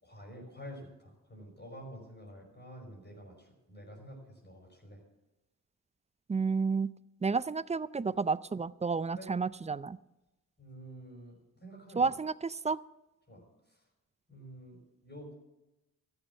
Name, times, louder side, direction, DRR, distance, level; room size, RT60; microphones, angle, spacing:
voice 1, 0.0-5.0 9.1-9.3 10.6-11.4 11.6-12.1 13.3-13.4 14.3-15.3, equal, 25° left, -1 dB, 5.3 m, -49 dB
voice 2, 6.3-6.9 7.2-10.0 12.0-12.8, right 4 dB, 20° right, 19 dB, 0.4 m, -31 dB
13.5 x 7.2 x 7.1 m, 1.0 s
supercardioid pair, 45°, 38 cm